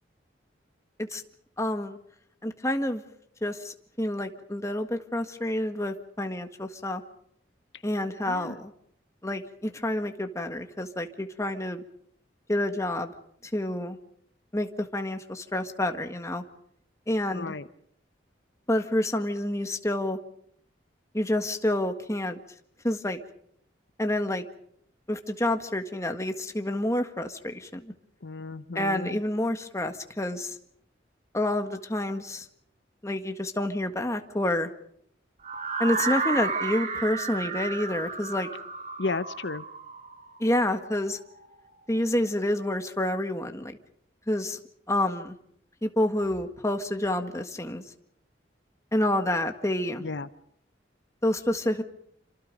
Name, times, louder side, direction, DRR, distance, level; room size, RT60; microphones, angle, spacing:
voice 1, 1.6-2.0 2.4-3.0 3.4-7.0 7.8-8.7 9.2-11.8 12.5-13.1 13.5-14.0 14.5-16.4 17.1-17.6 18.7-20.2 21.1-22.4 22.8-23.2 24.0-24.4 25.1-27.9 28.7-30.5 31.3-32.4 33.0-34.7 35.8-38.5 40.4-41.2 41.9-43.8 44.3-44.6 44.9-45.3 45.8-47.8 48.9-50.0 51.2-51.8, left 1 dB, 15° left, 6 dB, 1.7 m, -28 dB
voice 2, 8.3-8.6 17.3-17.7 28.2-29.2 39.0-39.6 50.0-50.3, left 3 dB, 75° left, 13 dB, 0.9 m, -33 dB
sound 1, 35.4-41.4, right 4 dB, 40° right, 2.2 m, -32 dB
27.5 x 26.0 x 5.3 m, 0.68 s
head